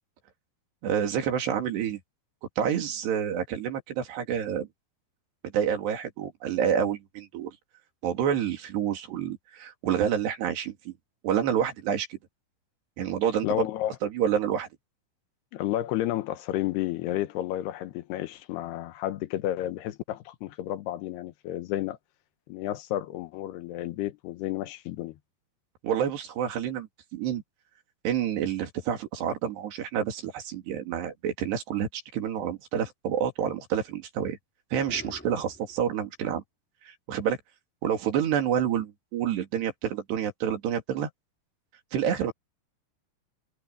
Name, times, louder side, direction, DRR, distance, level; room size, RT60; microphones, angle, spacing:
voice 1, 0.8-2.0 2.6-4.7 5.5-7.6 8.0-10.9 11.2-12.2 13.0-13.7 14.0-14.7 25.8-27.4 28.0-34.4 34.7-36.4 36.9-37.4 37.8-41.1 41.9-42.3, right 9 dB, 90° right, 4.8 m, -28 dB
voice 2, 13.4-13.9 15.5-22.0 22.5-25.2, left 14 dB, 80° left, 3.1 m, -31 dB
sound 1, 34.9-35.9, equal, 5° left, 4.2 m, -46 dB
omnidirectional pair, 4.7 m